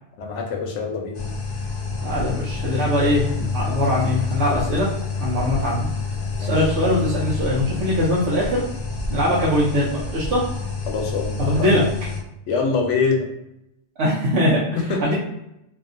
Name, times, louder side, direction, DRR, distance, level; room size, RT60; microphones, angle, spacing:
voice 1, 0.2-1.2 6.4-6.7 10.9-11.7 12.5-13.3 14.9-15.1, left 4 dB, 85° left, 2 dB, 0.9 m, -24 dB
sound 1, 1.1-12.2, left 4 dB, 60° left, 0.7 m, -28 dB
voice 2, 2.0-4.9 5.2-5.9 6.4-8.6 9.1-10.4 11.4-11.8 14.0-15.1, left 1 dB, 80° right, -7 dB, 1.0 m, -21 dB
2.6 x 2.4 x 2.5 m, 0.83 s
omnidirectional pair, 1.2 m